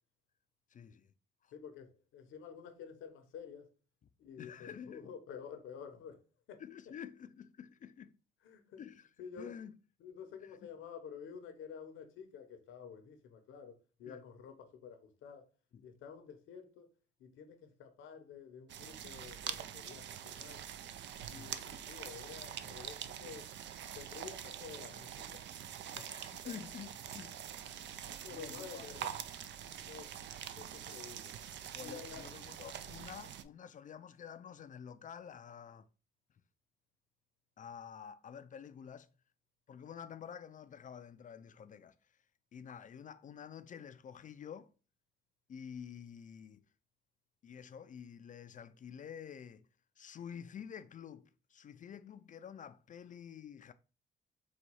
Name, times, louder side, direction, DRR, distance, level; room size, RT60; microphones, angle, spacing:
voice 1, 0.7-1.1 1.4-1.5 4.4-5.1 6.6-8.2 8.8-9.1 9.4-9.7 10.4-10.7 14.1-14.3 15.7-15.9 21.3-21.5 25.8-27.4 27.7-27.9 28.3-28.9 29.7-29.9 31.7-35.9 37.6-39.1 39.7-41.9 42.5-44.7 45.5-46.6 47.4-49.7 50.0-53.7, left 8 dB, 40° left, 0.4 m, -49 dB
voice 2, 1.5-3.7 4.2-6.2 6.5-6.6 8.4-8.8 9.2-9.5 10.0-15.5 15.8-16.9 17.2-20.6 21.3-23.5 23.9-25.5 26.0-26.1 26.4-26.5 28.0-29.1 29.8-30.2 30.5-31.4 31.8-32.4, left 7 dB, 85° left, 0.9 m, -50 dB
sound 1, 18.7-33.4, right 9 dB, 65° right, 0.5 m, -45 dB
4.1 x 2.3 x 4.6 m
cardioid pair, 90°, 20 cm